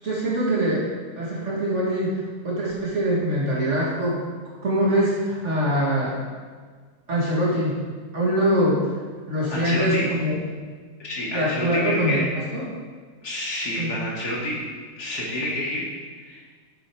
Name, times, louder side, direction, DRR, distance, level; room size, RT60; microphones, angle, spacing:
voice 1, 0.0-0.9 1.2-4.2 4.6-6.2 7.1-7.8 8.1-8.9 9.3-10.4 11.3-12.7 13.8-13.9, equal, 40° right, -5 dB, 2.0 m, -23 dB
voice 2, 9.5-10.1 11.0-12.3 13.2-14.6 15.0-15.9 16.2-16.4, left 1 dB, 55° left, -4 dB, 2.6 m, -28 dB
7.6 x 7.1 x 4.7 m, 1.5 s
omnidirectional pair, 1.9 m